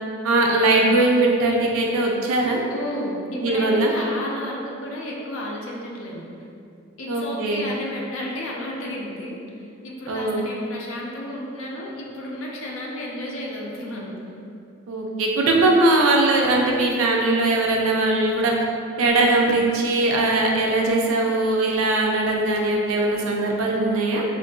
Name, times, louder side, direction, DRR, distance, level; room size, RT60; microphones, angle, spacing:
voice 1, 0.2-2.6 3.4-3.9 7.1-7.6 10.1-10.5 14.9-18.5 19.0-24.2, right 2 dB, 85° right, -1 dB, 0.4 m, -20 dB
voice 2, 2.7-6.3 7.0-14.1, left 1 dB, 80° left, -2 dB, 0.5 m, -32 dB
3.5 x 2.5 x 2.2 m, 2.5 s
head